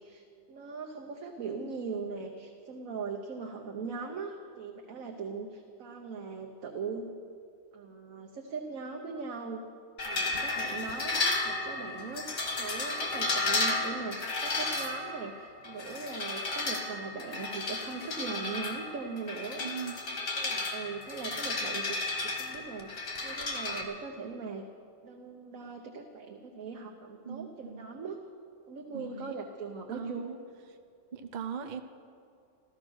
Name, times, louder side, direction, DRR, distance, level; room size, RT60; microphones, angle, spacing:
voice 1, 0.0-7.1 7.7-9.6 10.0-12.3 12.6-19.6 20.3-22.0 22.2-24.6 25.0-28.2 28.7-30.3, right 4 dB, 90° right, 2 dB, 1.4 m, -40 dB
sound 1, 10.0-23.8, left 2 dB, 65° left, 2.0 m, -33 dB
voice 2, 19.6-20.0 27.2-27.9 28.9-29.3 29.9-30.4 31.1-31.8, right 6 dB, 45° right, 8 dB, 0.8 m, -39 dB
14.5 x 14.5 x 6.2 m, 2.5 s
omnidirectional pair, 1.4 m